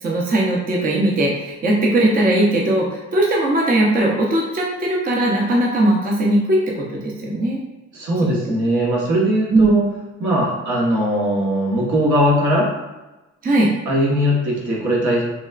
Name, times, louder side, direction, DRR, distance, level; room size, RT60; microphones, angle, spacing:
voice 1, 0.0-7.6 9.5-9.7 13.4-13.7, right 1 dB, 30° right, -2 dB, 0.6 m, -18 dB
voice 2, 7.9-9.8 10.2-12.7 13.9-15.2, equal, 75° right, -5 dB, 1.1 m, -19 dB
4.0 x 2.2 x 2.4 m, 1.1 s
cardioid pair, 90°, 30 cm